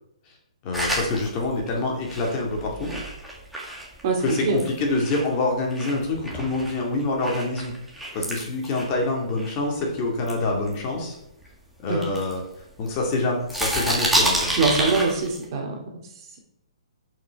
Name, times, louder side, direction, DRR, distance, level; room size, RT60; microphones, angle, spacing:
voice 1, 0.6-2.9 4.2-7.7 8.1-11.2 11.8-12.4 12.8-14.5, left 2 dB, 25° left, 0 dB, 2.1 m, -26 dB
sound 1, 0.7-5.3 5.7-9.8 10.2-11.5 11.9-13.1 13.4-15.4, right 1 dB, ahead, 1.8 m, -29 dB
voice 2, 4.0-4.6 11.9-12.0 14.6-15.8, right 4 dB, 35° right, 1 dB, 2.3 m, -23 dB
11.0 x 5.8 x 4.7 m, 0.81 s
hypercardioid pair, 160°, 3 cm